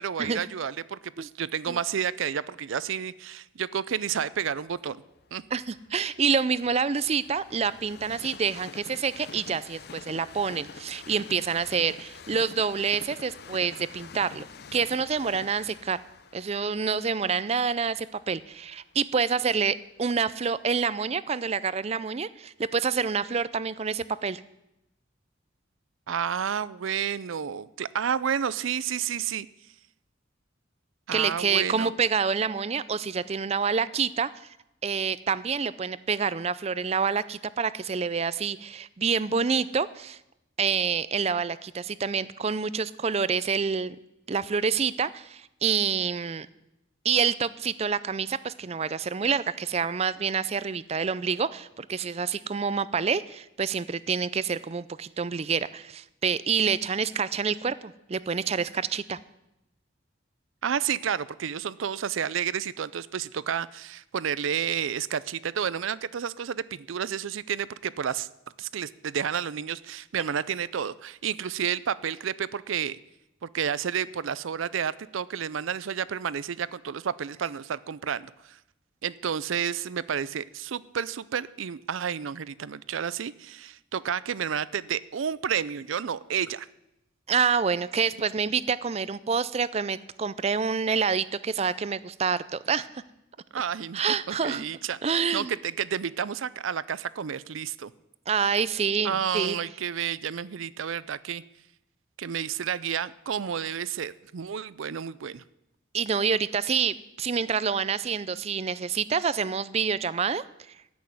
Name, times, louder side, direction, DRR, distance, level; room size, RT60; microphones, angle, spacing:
voice 1, 0.0-5.0 5.3-5.4 26.1-29.5 31.1-31.9 60.6-68.3 68.6-73.0 73.5-78.6 79.0-86.7 93.5-94.0 94.3-97.9 99.0-101.4 102.2-105.4, right 8 dB, 90° right, 19 dB, 0.5 m, -30 dB
Train, 4.4-20.4 21.0-21.1, left 5 dB, 55° left, 0.6 m, -47 dB
voice 2, 5.5-14.5 14.7-16.0 16.3-24.4 31.1-34.3 34.8-40.2 40.6-44.0 44.3-46.5 47.0-59.2 87.3-92.9 93.9-94.7 95.0-95.5 98.3-99.6 105.9-110.4, right 6 dB, 30° right, 17 dB, 0.4 m, -27 dB
14.5 x 6.3 x 9.3 m, 0.87 s
head